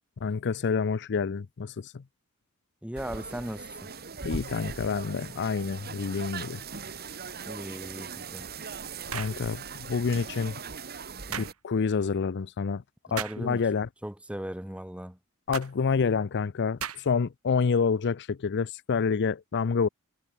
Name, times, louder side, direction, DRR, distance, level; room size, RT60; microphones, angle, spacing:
voice 1, 0.2-2.0 4.2-6.6 9.1-10.6 11.4-12.8 13.1-13.9 15.5-19.9, left 5 dB, 55° left, 0.5 m, -28 dB
voice 2, 2.8-3.9 7.4-8.5 11.3-11.5 13.1-13.6 14.0-15.2, equal, 5° right, 1.4 m, -38 dB
sound 1, 2.9-11.5, right 5 dB, 45° right, 2.1 m, -40 dB
sound 2, 9.1-9.4 11.3-11.6 13.2-13.4 15.5-15.7 16.8-17.2, right 8 dB, 75° right, 2.6 m, -35 dB
head